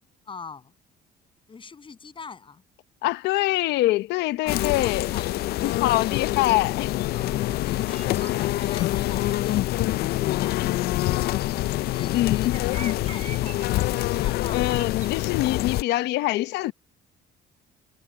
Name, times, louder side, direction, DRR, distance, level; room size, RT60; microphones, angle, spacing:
voice 1, 0.3-0.7 1.5-2.6 4.4-6.2 7.1-10.6 11.1-14.9, left 5 dB, 30° left, 7.5 m, -43 dB
voice 2, 3.0-5.1 5.6-6.9 12.1-13.0 14.5-16.7, left 16 dB, 85° left, 0.9 m, -24 dB
sound 1, 4.5-15.8, left 16 dB, 70° left, 0.4 m, -26 dB
sound 2, 5.0-15.6, right 7 dB, 45° right, 7.8 m, -49 dB
cardioid pair, 110°, 17 cm